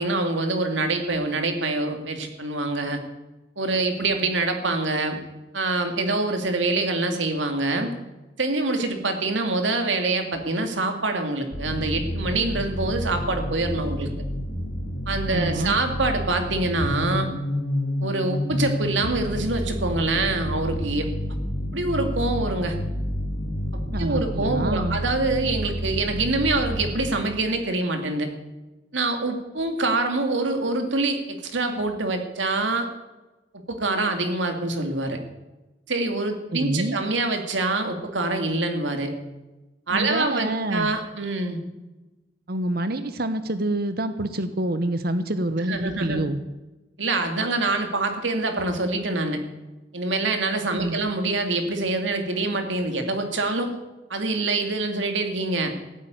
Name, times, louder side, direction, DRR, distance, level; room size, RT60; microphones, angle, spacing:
voice 1, 0.0-3.0 3.6-5.2 5.5-7.9 8.4-14.1 15.1-17.3 18.0-21.1 21.7-22.8 23.7-28.3 28.9-32.9 33.5-35.2 35.9-39.1 39.9-41.6 45.7-46.2 47.0-49.4 49.9-53.7 54.1-55.7, right 2 dB, 90° right, 5 dB, 2.4 m, -25 dB
sound 1, 11.5-27.1, left 1 dB, 75° left, 2.7 m, -29 dB
voice 2, 15.3-15.8 23.9-25.0 36.5-37.0 39.9-40.9 42.5-46.4 50.7-51.0, right 1 dB, 55° right, 11 dB, 0.9 m, -27 dB
15.0 x 8.7 x 9.3 m, 1.1 s
head